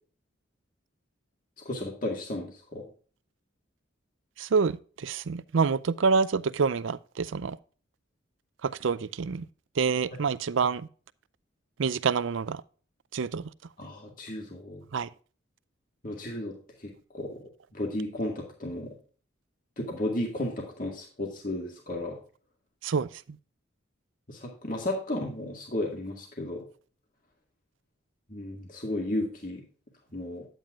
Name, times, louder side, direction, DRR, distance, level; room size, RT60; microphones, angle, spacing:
voice 1, 1.7-2.9 13.8-14.8 16.0-16.6 16.8-18.9 19.8-22.2 24.3-26.6 28.3-29.6 30.1-30.5, left 1 dB, 40° left, 2.0 m, -34 dB
voice 2, 4.4-7.6 8.6-9.5 9.8-10.9 11.8-12.6 13.1-13.5 14.9-15.1 22.8-23.2, right 5 dB, 75° right, 0.5 m, -27 dB
10.5 x 9.0 x 2.5 m
head